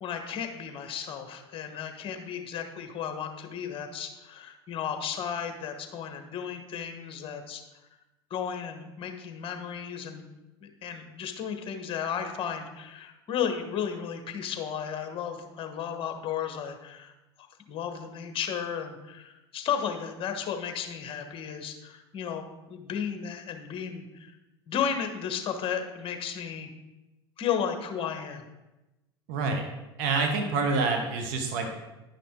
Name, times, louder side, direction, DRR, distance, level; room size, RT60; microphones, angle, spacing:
voice 1, 0.0-7.6 8.3-10.3 10.6-17.1 17.4-24.3 24.7-26.7 27.4-28.4, left 8 dB, 40° left, 6 dB, 1.2 m, -34 dB
voice 2, 29.3-29.7 30.0-31.7, right 4 dB, 65° right, 4 dB, 1.2 m, -27 dB
10.0 x 5.8 x 3.7 m, 1.0 s
hypercardioid pair, 85°, 14 cm